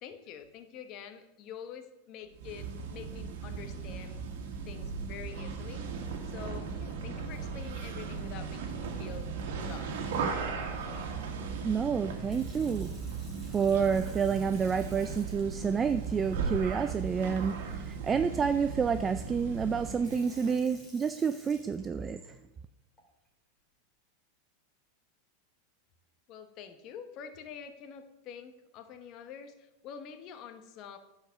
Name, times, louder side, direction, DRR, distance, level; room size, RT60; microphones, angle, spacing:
voice 1, 0.0-4.2 4.7-6.0 6.3-9.3 9.6-10.0 26.3-31.0, left 7 dB, 45° left, 8 dB, 1.1 m, -46 dB
sound 1, 2.3-20.1, right 5 dB, 70° right, 1.7 m, -37 dB
sound 2, 8.9-20.6, right 6 dB, 90° right, 1.0 m, -49 dB
voice 2, 11.6-12.9 13.5-22.2, right 6 dB, 20° right, 9 dB, 0.4 m, -29 dB
Sink (filling or washing) / Fill (with liquid), 12.1-22.3 23.0-23.3, equal, 10° left, 2.8 m, -58 dB
10.0 x 4.9 x 6.4 m, 0.95 s
supercardioid pair, 130°, 0 cm